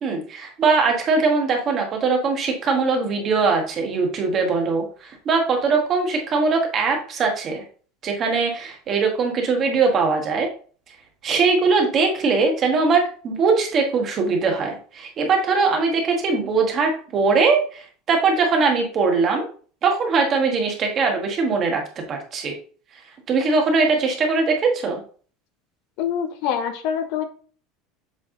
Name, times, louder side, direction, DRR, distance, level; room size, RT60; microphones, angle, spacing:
voice 1, 0.0-7.6 8.0-10.5 11.2-19.5 19.8-21.8 22.1-22.5 23.3-25.0, right 4 dB, 25° right, 3 dB, 1.3 m, -21 dB
voice 2, 26.0-27.2, left 8 dB, 55° left, 7 dB, 0.8 m, -25 dB
7.6 x 3.5 x 3.7 m, 0.42 s
cardioid pair, 170°, 0 cm